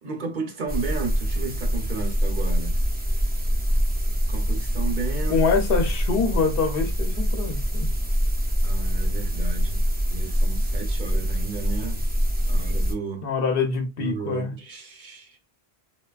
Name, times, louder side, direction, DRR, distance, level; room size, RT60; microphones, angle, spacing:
voice 1, 0.0-2.8 4.3-5.4 8.6-12.0 12.5-13.3 14.0-15.4, right 4 dB, 55° right, 0.8 m, -33 dB
sound 1, 0.7-12.9, equal, 15° right, 0.3 m, -24 dB
voice 2, 5.3-7.9 13.2-14.5, left 5 dB, 65° left, 0.8 m, -25 dB
3.1 x 2.2 x 2.2 m
omnidirectional pair, 1.0 m